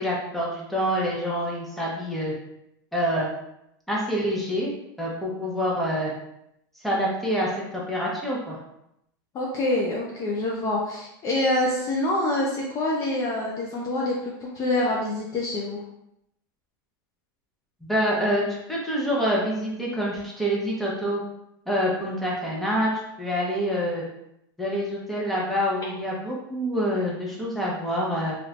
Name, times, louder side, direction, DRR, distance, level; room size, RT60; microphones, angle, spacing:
voice 1, 0.0-2.3 2.9-3.3 3.9-4.7 5.0-6.1 6.8-8.6 17.8-21.2 21.7-22.9 23.2-24.0 24.6-28.3, equal, ahead, -5 dB, 0.8 m, -26 dB
voice 2, 9.3-15.8, left 1 dB, 30° left, -2 dB, 0.5 m, -26 dB
3.1 x 3.1 x 2.4 m, 0.80 s
supercardioid pair, 140°, 11 cm